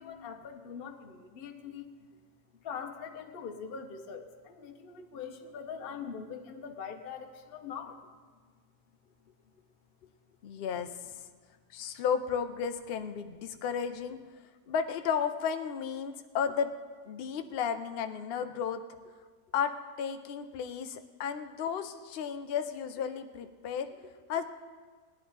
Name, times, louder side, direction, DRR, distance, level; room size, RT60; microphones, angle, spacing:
voice 1, 0.0-1.9 2.5-8.0 13.6-13.7, left 6 dB, 45° left, 5 dB, 0.8 m, -42 dB
voice 2, 10.4-10.9 11.7-14.2 14.7-16.7 17.1-18.8 19.5-24.4, left 7 dB, 80° left, 8 dB, 0.5 m, -33 dB
17.5 x 11.0 x 3.9 m, 1.5 s
omnidirectional pair, 1.7 m